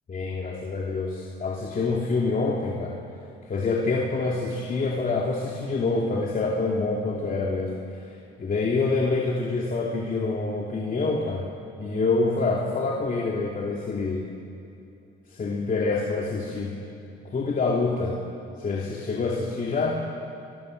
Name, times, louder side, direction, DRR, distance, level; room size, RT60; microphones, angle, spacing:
voice 1, 0.1-3.0 3.5-8.1 8.4-11.5 11.8-14.3 15.3-16.7 17.3-18.2 18.6-20.0, left 3 dB, 45° left, -2 dB, 2.9 m, -26 dB
29.0 x 22.0 x 6.6 m, 2.7 s
cardioid pair, 90°, 20 cm